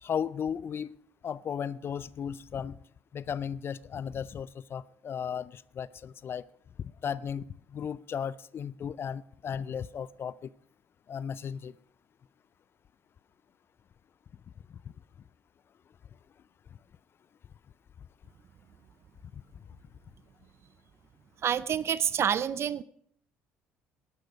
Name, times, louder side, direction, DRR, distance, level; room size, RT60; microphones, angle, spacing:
voice 1, 0.0-1.0 1.2-2.8 3.1-6.4 7.0-7.5 7.7-10.5 11.1-11.7, left 7 dB, 40° left, 21 dB, 0.4 m, -35 dB
voice 2, 21.4-22.8, right 8 dB, 45° right, 17 dB, 0.5 m, -28 dB
12.5 x 11.5 x 5.1 m, 0.65 s
hypercardioid pair, 60°, 6 cm